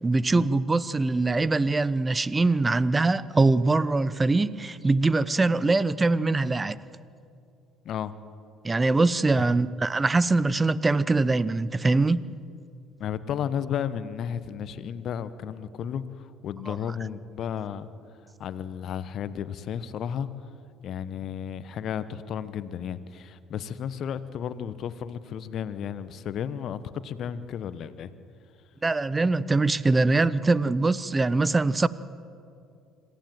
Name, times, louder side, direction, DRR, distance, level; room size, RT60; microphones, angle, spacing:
voice 1, 0.0-6.8 8.6-12.3 16.7-16.8 28.8-31.9, right 3 dB, 20° right, 0.8 m, -23 dB
voice 2, 13.0-17.9 18.4-20.3 20.8-28.1, left 8 dB, 55° left, 1.1 m, -33 dB
26.0 x 15.0 x 9.1 m
hypercardioid pair, 55°, 0 cm